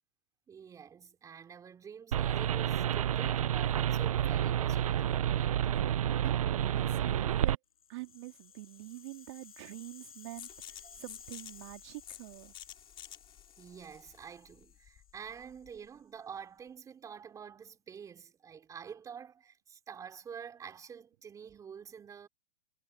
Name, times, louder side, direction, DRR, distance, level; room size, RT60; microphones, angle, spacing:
voice 1, 0.5-5.6 10.8-11.0 13.6-22.3, right 7 dB, 20° right, 4.4 m, -48 dB
sound 1, 2.1-7.6, right 10 dB, 80° right, 0.6 m, -29 dB
voice 2, 6.2-7.6 7.9-12.5, right 22 dB, 50° right, 2.4 m, -46 dB
Rattle (instrument), 7.7-15.9, left 7 dB, 85° left, 6.5 m, -56 dB
Magical Zap, 10.4-15.9, left 11 dB, 30° left, 4.0 m, -51 dB
hypercardioid pair, 120°, 18 cm